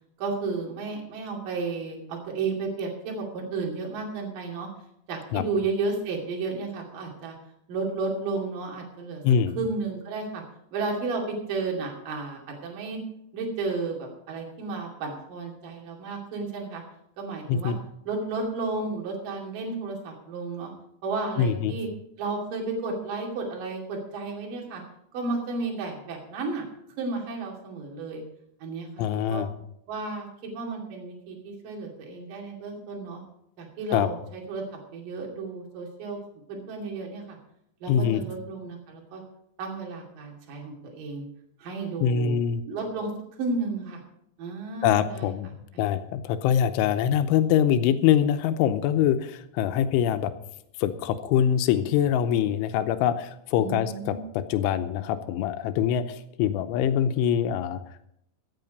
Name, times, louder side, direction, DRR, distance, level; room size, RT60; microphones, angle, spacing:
voice 1, 0.2-4.7 5.1-7.3 7.7-9.2 9.6-10.4 10.7-13.0 13.3-16.8 17.2-17.7 18.1-20.7 21.0-21.9 22.2-24.8 25.1-26.7 27.0-28.2 28.6-29.4 29.9-33.2 33.6-34.6 34.9-36.2 36.5-37.4 37.8-39.2 39.6-41.3 41.6-42.4 42.7-43.1 43.4-44.0 44.4-45.3 45.7-45.8 53.6-54.2, right 3 dB, 50° right, 0 dB, 3.9 m, -32 dB
voice 2, 9.2-9.6 17.5-17.8 21.4-21.8 29.0-29.5 33.9-34.1 37.9-38.2 42.0-42.6 44.8-45.5 45.8-50.3 50.8-57.8, left 9 dB, 90° left, 10 dB, 3.3 m, -24 dB
15.0 x 8.6 x 5.2 m, 0.76 s
omnidirectional pair, 5.4 m